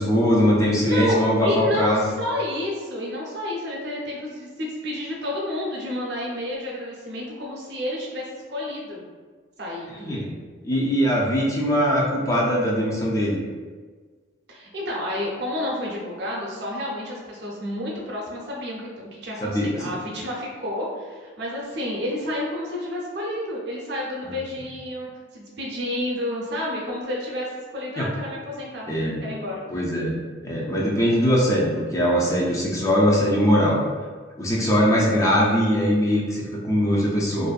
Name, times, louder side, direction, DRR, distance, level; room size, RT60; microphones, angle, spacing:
voice 1, 0.0-2.1 10.0-10.3 10.6-13.4 19.4-19.9 24.2-24.4 28.0-28.1 28.9-29.2 29.7-30.1 30.4-33.8 34.4-37.5, equal, 15° left, -3 dB, 0.3 m, -21 dB
voice 2, 0.8-9.0 9.6-9.9 14.5-28.9 29.2-29.6, left 1 dB, 65° right, -3 dB, 0.6 m, -30 dB
2.5 x 2.1 x 2.3 m, 1.5 s
head